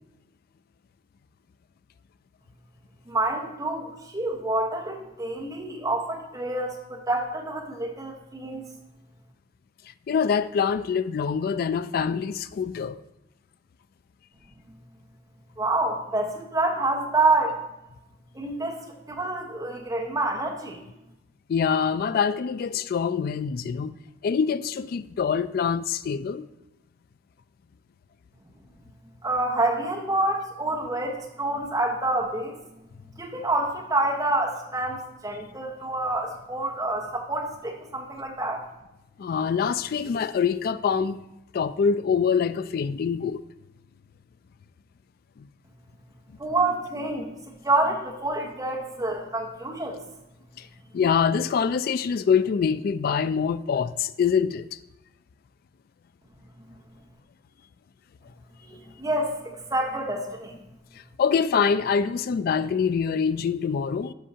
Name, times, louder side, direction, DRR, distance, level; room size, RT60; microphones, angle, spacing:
voice 1, 3.1-8.6 15.6-17.6 18.3-20.8 29.2-32.6 33.2-38.6 46.4-50.0 58.6-60.6, right 2 dB, 20° right, 1.1 m, -27 dB
voice 2, 10.1-13.0 21.5-23.9 24.2-26.5 39.2-41.2 41.5-43.4 45.4-45.5 50.6-50.7 50.9-54.8 61.2-64.1, left 6 dB, 50° left, 0.3 m, -25 dB
12.5 x 5.5 x 2.8 m
head